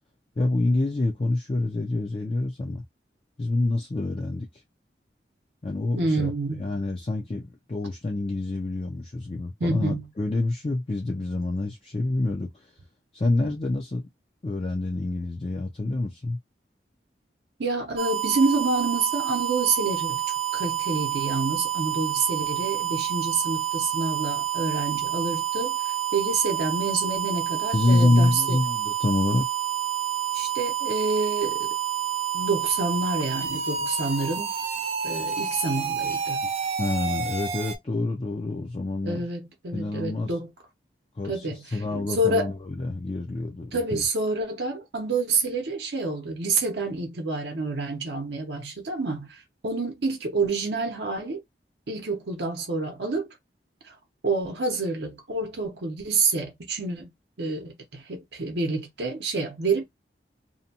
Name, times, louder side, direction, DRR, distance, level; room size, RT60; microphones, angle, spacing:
voice 1, 0.4-2.8 3.4-4.5 5.6-6.3 6.6-12.7 13.1-14.1 14.4-16.4 27.7-29.5 36.8-39.2 39.7-40.3 41.2-44.0, left 2 dB, 30° left, 0.4 m, -27 dB
voice 2, 5.9-6.7 9.6-10.1 13.4-13.5 17.6-20.2 20.5-28.6 30.3-31.7 32.3-34.6 35.0-36.4 39.0-40.5 41.2-42.5 43.7-51.4 51.9-53.3 53.8-53.9 54.2-57.1 57.4-59.8, right 3 dB, 75° right, 0.7 m, -28 dB
sound 1, 18.0-37.8, right 10 dB, 35° right, 0.3 m, -29 dB
2.7 x 2.2 x 2.7 m
head